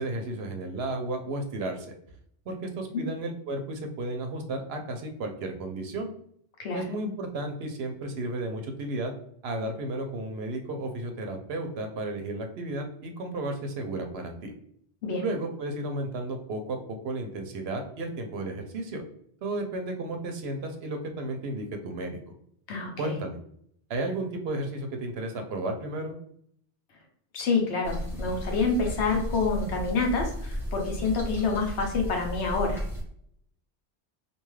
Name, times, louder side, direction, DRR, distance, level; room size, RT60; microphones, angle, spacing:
voice 1, 0.0-1.9 2.5-6.1 6.7-9.1 9.4-14.5 15.2-16.8 17.0-19.0 19.4-22.2 23.0-23.4 23.9-26.2, right 2 dB, 70° right, 4 dB, 0.8 m, -33 dB
voice 2, 22.7-23.2 27.3-32.8, left 4 dB, 70° left, 1 dB, 1.0 m, -27 dB
sound 1, 27.8-33.0, equal, ahead, 0.9 m, -34 dB
2.6 x 2.3 x 3.1 m, 0.68 s
omnidirectional pair, 1.2 m